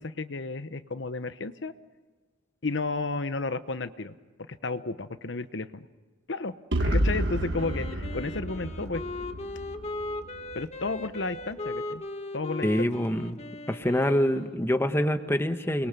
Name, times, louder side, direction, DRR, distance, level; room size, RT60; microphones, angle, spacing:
voice 1, 0.0-1.7 2.6-4.1 4.5-5.9 6.3-6.5 6.8-9.0 10.5-12.0 12.3-12.9, left 3 dB, 75° left, 11 dB, 1.0 m, -32 dB
sound 1, 6.7-10.6, right 1 dB, 65° right, 1.6 m, -30 dB
Wind instrument woodwind instrument, 7.5-14.7, left 2 dB, 35° left, 1.5 m, -38 dB
voice 2, 12.6-13.4 13.7-15.9, equal, 15° left, 7 dB, 1.3 m, -25 dB
29.0 x 22.0 x 6.8 m, 1.4 s
head